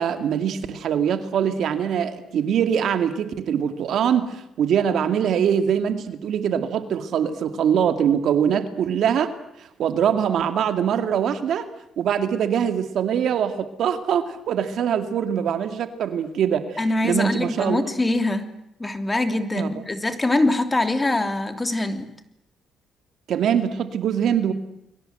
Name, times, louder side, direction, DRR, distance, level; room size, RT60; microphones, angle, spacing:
voice 1, 0.0-9.3 9.6-11.7 12.0-16.8 17.0-17.8 19.5-19.7 23.3-24.5, right 8 dB, 70° right, 8 dB, 2.3 m, -23 dB
voice 2, 16.8-18.5 18.8-22.1, left 2 dB, 20° left, 8 dB, 3.0 m, -23 dB
30.0 x 22.5 x 7.9 m, 0.82 s
cardioid pair, 90°, 0 cm